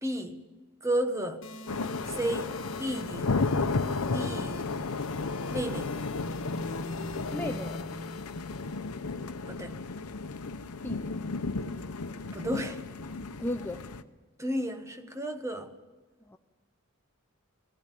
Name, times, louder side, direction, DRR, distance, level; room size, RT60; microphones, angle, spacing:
voice 1, 0.0-0.4 0.8-1.4 2.0-3.4 4.1-4.7 5.5-6.0 9.5-9.8 12.3-12.8 14.4-15.7, right 1 dB, 15° right, 1.1 m, -32 dB
sound 1, 1.4-9.4, left 2 dB, 60° left, 1.4 m, -41 dB
sound 2, 1.7-14.0, left 3 dB, 85° left, 0.9 m, -33 dB
voice 2, 7.3-8.0 10.8-11.2 13.4-13.9 16.2-16.4, left 1 dB, 10° left, 0.5 m, -36 dB
18.0 x 16.0 x 9.1 m
head